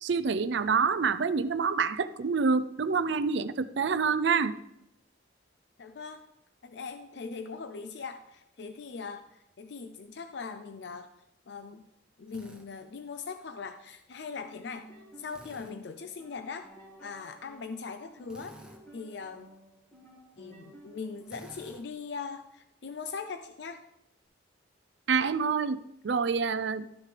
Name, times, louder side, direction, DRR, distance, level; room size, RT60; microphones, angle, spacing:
voice 1, 0.0-4.6 25.1-26.9, right 5 dB, 65° right, 14 dB, 0.4 m, -27 dB
voice 2, 5.8-6.3 6.6-11.1 11.5-11.8 12.2-14.9 15.2-16.7 17.0-18.6 18.9-19.5 20.4-23.8, left 5 dB, 65° left, 8 dB, 0.5 m, -40 dB
Drill, 12.3-12.7 15.3-15.7 18.3-18.8 21.3-21.8, right 1 dB, 5° right, 0.9 m, -51 dB
sound 1, 14.2-21.7, right 1 dB, 10° left, 2.0 m, -54 dB
12.5 x 6.7 x 3.3 m, 0.82 s
head